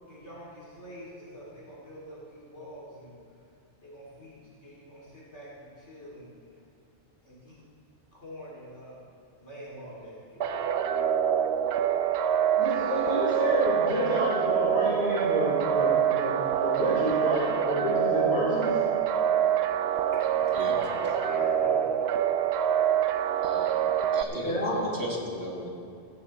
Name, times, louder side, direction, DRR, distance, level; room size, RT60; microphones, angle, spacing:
voice 1, 0.0-3.2 3.8-6.4 7.2-7.6 8.1-9.0 9.4-10.8 20.1-22.0 24.3-24.9, equal, 75° left, -6 dB, 3.3 m, -44 dB
sound 1, 10.4-24.2, right 9 dB, 65° right, 0.8 m, -26 dB
voice 2, 12.6-18.8 24.4-24.8, equal, 50° left, -10 dB, 4.2 m, -29 dB
voice 3, 24.1-25.7, equal, 50° right, -3 dB, 2.4 m, -36 dB
15.5 x 15.0 x 3.3 m, 2.6 s
omnidirectional pair, 1.2 m